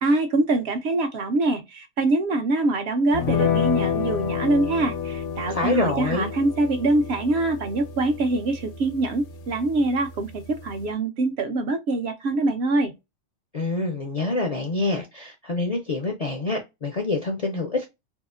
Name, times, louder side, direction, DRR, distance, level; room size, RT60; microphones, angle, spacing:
voice 1, 0.0-12.9, right 2 dB, 65° right, 0.8 m, -24 dB
sound 1, 3.1-10.9, left 7 dB, 75° left, 0.9 m, -30 dB
voice 2, 5.5-6.3 13.5-17.9, left 2 dB, 55° left, 0.4 m, -26 dB
2.8 x 2.4 x 2.3 m
omnidirectional pair, 1.3 m